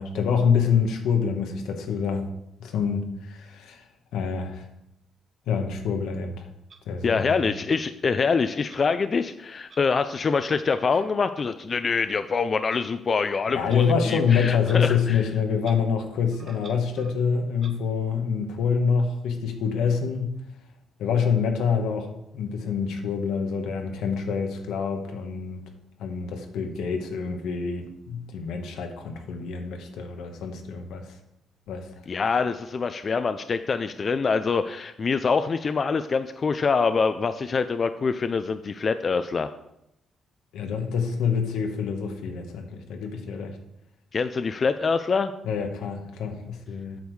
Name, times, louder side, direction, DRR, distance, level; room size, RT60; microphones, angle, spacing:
voice 1, 0.0-2.3 2.6-3.8 4.1-4.6 5.5-6.5 6.9-7.4 13.5-20.4 21.0-25.6 26.0-31.2 31.7-31.9 40.5-43.6 45.4-47.0, left 6 dB, 85° left, 4 dB, 1.2 m, -26 dB
Clock, 6.7-6.8 7.7-7.8 8.7-8.8 9.7-9.8 10.7-10.8 11.7-11.8 12.7-12.8 13.6-13.8 14.6-14.8 15.1-15.2 15.6-15.8 16.3-17.2 17.6-17.7, right 4 dB, 45° right, 1.0 m, -48 dB
voice 2, 7.0-15.2 32.1-39.5 44.1-45.3, left 5 dB, 40° left, 10 dB, 0.4 m, -25 dB
8.4 x 6.3 x 4.8 m, 0.83 s
cardioid pair, 90°, 0 cm